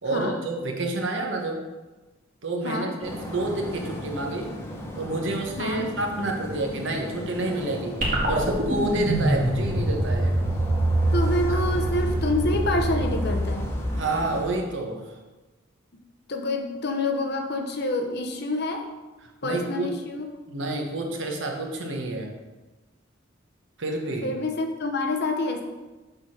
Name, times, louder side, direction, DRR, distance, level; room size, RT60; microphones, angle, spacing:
voice 1, 0.0-1.6 2.4-4.5 4.9-8.0 8.3-10.3 11.5-11.6 14.0-15.2 19.4-19.9 20.5-22.3 23.8-24.3, right 2 dB, 65° right, 1 dB, 1.2 m, -29 dB
sound 1, 3.0-14.4, equal, 15° left, 0.9 m, -37 dB
sound 2, 8.0-14.5, right 1 dB, 45° right, 1.9 m, -25 dB
voice 2, 11.1-13.7 16.3-18.9 19.4-20.3 24.2-25.6, left 2 dB, 55° left, 4 dB, 0.9 m, -27 dB
6.8 x 3.9 x 6.4 m, 1.2 s
head